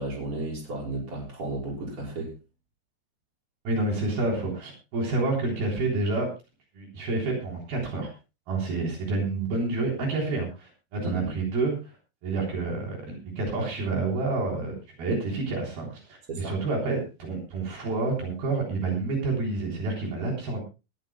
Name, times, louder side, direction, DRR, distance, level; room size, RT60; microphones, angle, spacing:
voice 1, 0.0-2.3 11.0-11.3 16.3-16.6, right 2 dB, 35° right, -3 dB, 6.4 m, -33 dB
voice 2, 3.7-6.3 6.8-8.1 8.5-11.9 12.2-20.6, right 3 dB, 70° right, -1 dB, 5.5 m, -29 dB
20.0 x 14.0 x 2.2 m, 0.30 s
omnidirectional pair, 4.6 m